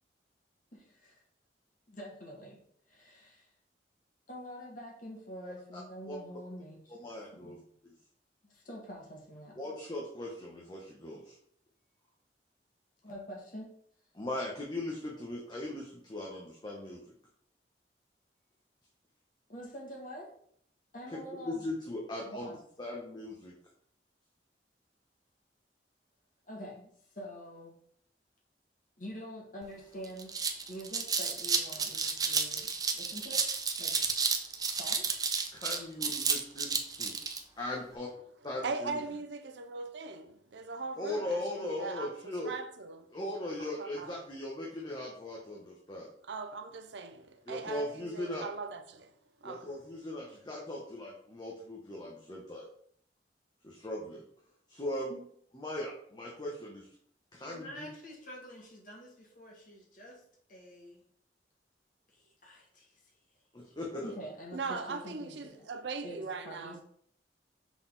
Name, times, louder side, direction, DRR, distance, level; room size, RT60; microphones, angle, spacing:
voice 1, 0.7-1.2 1.9-2.6 2.9-3.5 4.3-7.0 7.3-7.7 8.4-9.7 13.0-13.7 19.5-20.3 20.9-21.7 22.2-22.6 26.5-27.7 29.0-33.4 33.8-33.9 34.8-35.0 55.1-55.3 57.4-60.2 60.5-61.0 62.1-62.9 63.7-63.8 64.0-65.7 66.0-66.8, equal, 50° left, 2.0 m, -46 dB
voice 2, 7.0-7.6 9.6-11.3 14.1-17.0 21.1-21.2 21.5-22.5 22.8-23.5 35.5-37.1 37.6-38.1 38.4-39.0 41.0-42.5 43.1-46.1 47.5-48.5 49.4-52.7 53.6-54.2 54.7-55.1 55.5-56.9 57.3-57.9 63.5-64.1, left 1 dB, 25° left, 0.9 m, -39 dB
sound 1, 29.6-29.7 30.0-37.4, right 5 dB, 20° right, 0.6 m, -31 dB
voice 3, 38.6-43.1 43.6-44.1 46.2-49.1 49.4-49.7 64.5-66.8, right 4 dB, 80° right, 0.6 m, -40 dB
5.9 x 4.1 x 4.0 m
head